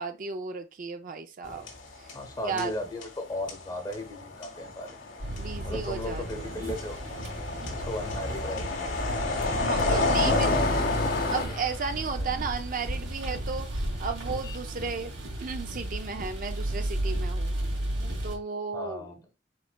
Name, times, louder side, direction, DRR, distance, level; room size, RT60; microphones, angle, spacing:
voice 1, 0.0-1.7 2.0-2.1 2.4-2.7 5.3-6.5 9.6-10.8 11.3-15.1 15.4-17.5 18.2-19.1, right 5 dB, 45° right, 0.5 m, -34 dB
sound 1, 1.4-2.3 2.6-11.4, left 3 dB, 90° left, 1.6 m, -30 dB
voice 2, 2.1-5.0 5.6-7.3 7.6-9.0 9.9-10.9 12.1-12.4 18.7-19.2, left 1 dB, 20° left, 0.9 m, -36 dB
sound 2, 5.2-18.3, right 1 dB, 75° right, 2.1 m, -33 dB
sound 3, 9.0-13.5 13.9-15.4, left 4 dB, 55° left, 0.8 m, -40 dB
4.8 x 4.6 x 2.2 m
head